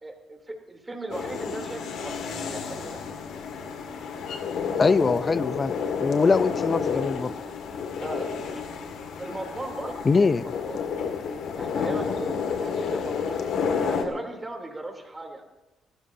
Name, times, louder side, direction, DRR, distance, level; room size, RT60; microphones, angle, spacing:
voice 1, 0.0-3.0 7.9-8.8 9.2-10.8 11.6-13.4 13.8-15.4, right 2 dB, 20° right, 2 dB, 3.3 m, -38 dB
sound 1, 1.1-14.1, left 6 dB, 75° left, 2.1 m, -30 dB
voice 2, 4.8-5.7 6.0-7.3 10.0-10.4, left 4 dB, 35° left, 16 dB, 0.6 m, -22 dB
27.0 x 14.0 x 2.8 m, 1.0 s
cardioid pair, 90°, 0 cm